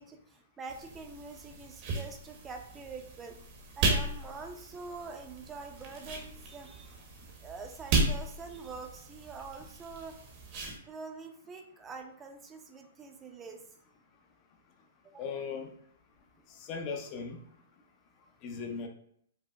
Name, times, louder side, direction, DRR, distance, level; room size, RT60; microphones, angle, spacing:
voice 1, 0.0-3.4 3.8-6.9 7.4-10.2 10.9-13.6 15.0-15.2 16.4-16.5, right 4 dB, 20° right, 4 dB, 0.5 m, -45 dB
sound 1, 0.7-10.8, right 2 dB, 40° right, 0.8 m, -35 dB
voice 2, 15.2-15.7 16.6-17.4 18.4-18.9, left 5 dB, 40° left, 4 dB, 0.6 m, -37 dB
5.1 x 2.0 x 2.3 m, 0.66 s
hypercardioid pair, 125°, 0 cm